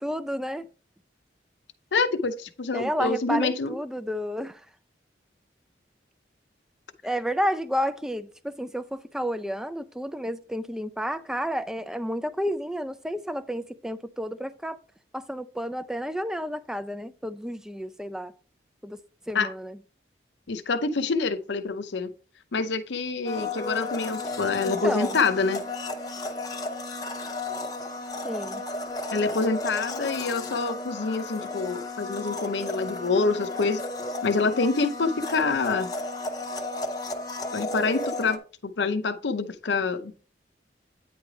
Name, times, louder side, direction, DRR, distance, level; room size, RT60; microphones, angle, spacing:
voice 1, 0.0-0.7 2.7-4.6 7.0-14.8 15.1-18.3 18.8-19.0 19.3-19.8 24.5-25.2 28.2-28.6, equal, 5° right, 0.3 m, -31 dB
voice 2, 1.9-3.8 19.3-19.5 20.5-22.1 22.5-25.6 29.1-33.8 34.2-35.9 37.5-40.1, left 4 dB, 75° left, 0.6 m, -26 dB
Domestic sounds home sounds, 23.3-38.4, left 2 dB, 20° left, 0.7 m, -33 dB
9.3 x 3.2 x 4.8 m
head